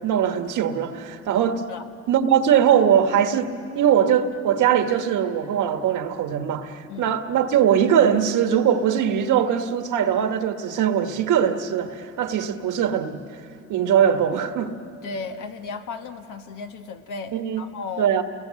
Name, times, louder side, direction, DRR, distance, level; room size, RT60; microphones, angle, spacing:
voice 1, 0.0-1.6 2.1-13.2 13.7-14.8 17.3-17.6 18.0-18.2, right 9 dB, 85° right, 7 dB, 1.5 m, -21 dB
voice 2, 15.0-18.2, left 4 dB, 80° left, 5 dB, 1.7 m, -35 dB
30.0 x 21.0 x 7.6 m, 2.9 s
cardioid pair, 90°, 30 cm